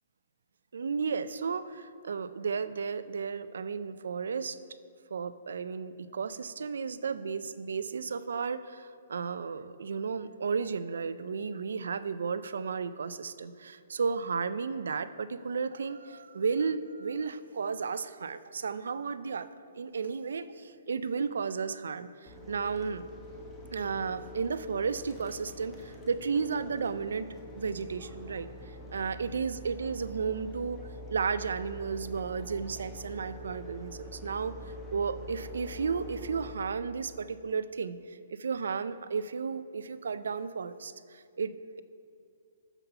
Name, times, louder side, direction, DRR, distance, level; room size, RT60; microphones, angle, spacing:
voice 1, 0.7-4.6 5.1-19.5 19.8-23.1 23.7-28.5 28.9-30.8 31.1-34.6 34.9-41.8, right 5 dB, 85° right, 14 dB, 0.4 m, -33 dB
sound 1, 22.3-36.5, left 1 dB, 10° left, 1.0 m, -45 dB
6.9 x 5.8 x 5.5 m, 2.4 s
hypercardioid pair, 160°, 0 cm